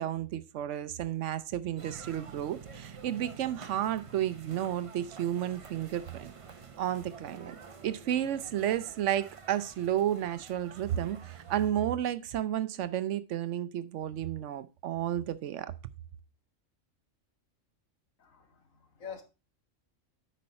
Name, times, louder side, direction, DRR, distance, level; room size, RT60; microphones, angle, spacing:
voice 1, 0.0-6.3 6.8-15.7, right 11 dB, 70° right, 0.9 m, -32 dB
sound 1, 1.8-11.7, right 5 dB, 30° right, 0.6 m, -49 dB
voice 2, 18.2-19.2, left 7 dB, 80° left, 1.8 m, -46 dB
8.4 x 5.6 x 4.2 m
omnidirectional pair, 1.4 m